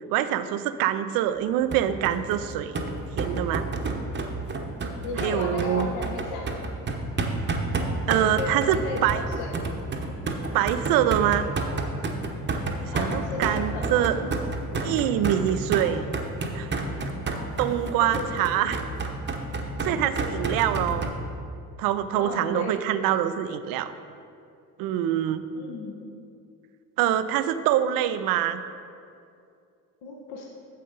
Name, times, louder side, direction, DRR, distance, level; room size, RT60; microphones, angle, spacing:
voice 1, 0.1-2.8 3.2-3.6 5.2-5.9 8.1-9.2 10.5-11.5 12.9-14.1 14.8-16.1 16.5-16.7 17.6-18.8 19.8-21.1 21.8-23.9 24.8-25.4 27.0-28.6, right 11 dB, 45° right, 12 dB, 0.6 m, -25 dB
sound 1, 1.7-21.1, right 3 dB, 20° right, 1.0 m, -30 dB
voice 2, 5.0-6.7 8.1-9.5 12.9-14.3 14.7-15.1 18.1-18.6 20.2-20.3 22.1-22.8 25.5-26.1 30.0-30.5, left 3 dB, 50° left, -2 dB, 1.2 m, -35 dB
9.3 x 7.4 x 4.0 m, 2.4 s
figure-of-eight pair, 60°, 48 cm